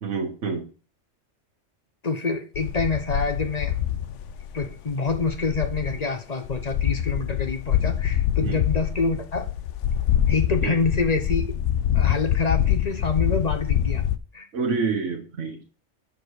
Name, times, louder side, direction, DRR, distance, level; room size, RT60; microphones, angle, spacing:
voice 1, 0.0-0.7 8.4-8.6 10.6-10.8 14.5-15.6, right 5 dB, 70° right, 1 dB, 1.5 m, -27 dB
voice 2, 2.0-3.8 4.5-9.5 10.3-11.5 11.9-14.0 14.3-14.5, left 4 dB, 35° left, 6 dB, 0.9 m, -26 dB
sound 1, 2.5-6.0 6.4-14.2, left 10 dB, 75° left, 0.9 m, -25 dB
6.8 x 4.9 x 6.3 m, 0.37 s
omnidirectional pair, 1.3 m